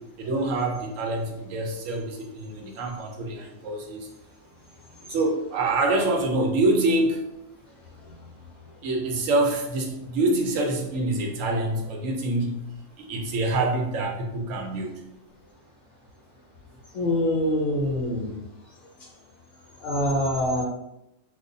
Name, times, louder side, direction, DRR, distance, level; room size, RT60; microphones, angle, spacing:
voice 1, 0.2-4.1 5.1-7.2 8.8-12.6 13.0-15.0, right 2 dB, 90° right, 2 dB, 1.0 m, -26 dB
voice 2, 16.9-18.4 19.8-20.6, left 1 dB, 85° left, -3 dB, 1.1 m, -24 dB
3.3 x 2.1 x 3.8 m, 0.86 s
omnidirectional pair, 1.3 m